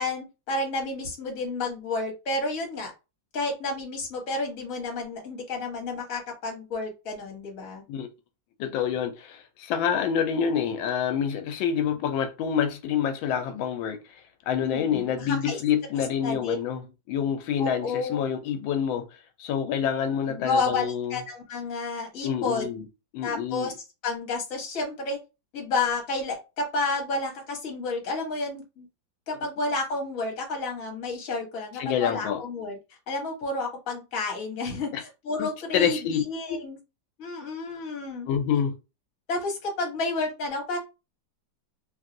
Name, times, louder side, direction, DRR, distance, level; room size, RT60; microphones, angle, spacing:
voice 1, 0.0-2.9 3.3-7.8 14.6-15.6 16.2-16.6 17.6-18.2 20.3-22.8 23.2-23.7 24.0-25.2 25.5-28.9 29.3-32.8 33.1-36.8 37.2-38.3 39.3-40.8, left 3 dB, 50° left, 1.4 m, -31 dB
voice 2, 8.6-14.0 14.5-19.1 19.4-21.2 22.2-22.8 23.1-23.7 31.8-32.4 34.9-35.0 35.4-36.6 38.3-38.8, left 8 dB, 90° left, 1.3 m, -27 dB
3.2 x 2.6 x 2.5 m
omnidirectional pair, 2.1 m